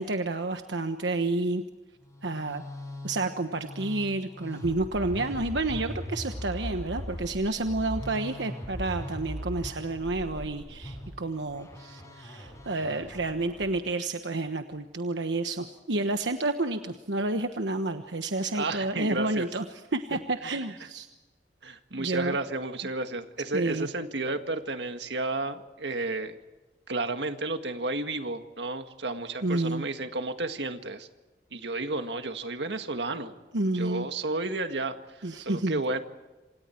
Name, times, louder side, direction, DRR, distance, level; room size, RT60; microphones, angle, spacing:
voice 1, 0.0-1.6 2.2-2.6 3.0-19.6 19.9-21.1 22.0-22.4 23.5-23.9 29.4-29.9 33.5-34.1 35.2-35.8, right 2 dB, 90° right, 7 dB, 1.2 m, -30 dB
Musical instrument, 2.0-13.8, equal, 20° left, 7.3 m, -39 dB
voice 2, 18.5-19.5 20.4-20.6 21.6-26.4 26.9-31.1 31.5-33.3 33.7-36.0, right 2 dB, 75° right, 7 dB, 1.9 m, -32 dB
27.5 x 27.5 x 4.6 m, 1.2 s
head